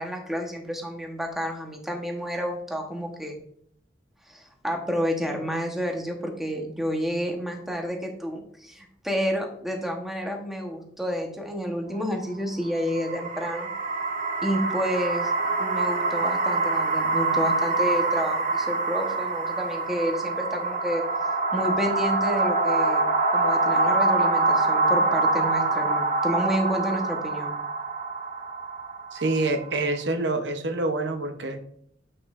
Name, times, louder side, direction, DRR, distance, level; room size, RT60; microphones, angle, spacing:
voice 1, 0.0-3.3 4.3-13.7 14.4-15.3 15.6-21.0 21.5-27.5, equal, ahead, 2 dB, 1.0 m, -30 dB
sound 1, 12.8-29.9, right 3 dB, 50° right, 0.8 m, -25 dB
voice 2, 29.1-31.6, right 2 dB, 80° right, 6 dB, 0.8 m, -26 dB
8.4 x 5.4 x 2.4 m, 0.65 s
head